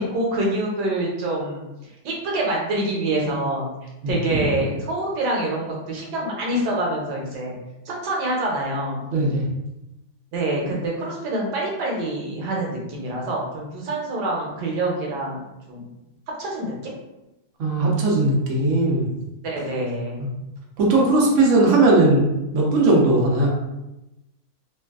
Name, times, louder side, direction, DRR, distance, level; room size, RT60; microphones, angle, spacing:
voice 1, 0.0-3.7 4.1-7.5 7.9-9.0 10.3-15.9 16.4-16.7 19.4-20.3, right 1 dB, 65° right, -2 dB, 1.1 m, -26 dB
voice 2, 9.1-9.4 17.6-19.1 20.2-20.3 20.8-22.3 22.5-23.5, right 2 dB, 85° right, -3 dB, 0.6 m, -18 dB
3.2 x 2.3 x 2.3 m, 0.94 s
omnidirectional pair, 2.2 m